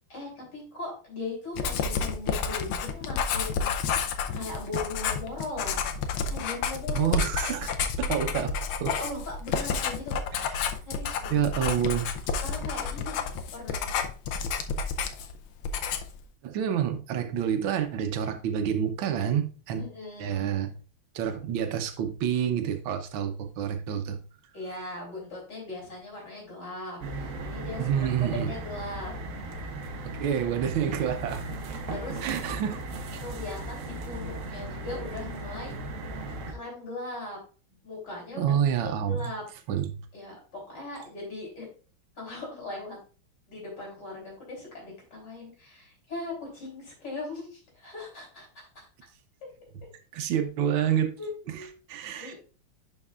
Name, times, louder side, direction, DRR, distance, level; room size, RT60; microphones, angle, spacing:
voice 1, 0.1-5.9 6.3-7.1 7.5-7.6 8.9-10.2 10.8-11.3 12.3-13.2 13.5-13.9 19.8-20.5 24.5-29.1 31.5-32.3 33.2-35.8 36.1-37.4 37.8-38.5 38.8-39.4 40.1-41.7 42.2-43.0 43.5-48.9 51.2-51.8 52.1-52.4, left 2 dB, 55° left, 3.5 m, -39 dB
Writing, 1.6-15.4 15.6-16.2, left 6 dB, 85° left, 1.5 m, -30 dB
voice 2, 6.9-7.7 8.0-8.9 10.6-10.7 11.3-12.1 16.4-19.8 20.2-20.7 21.1-24.2 27.8-28.5 30.0-31.5 32.2-32.8 33.1-33.2 38.4-39.2 39.7-39.9 50.1-51.2 51.9-52.3, right 9 dB, 75° right, 1.6 m, -28 dB
sound 1, 27.0-36.5, right 2 dB, 55° right, 0.9 m, -36 dB
11.0 x 4.6 x 2.4 m
omnidirectional pair, 2.2 m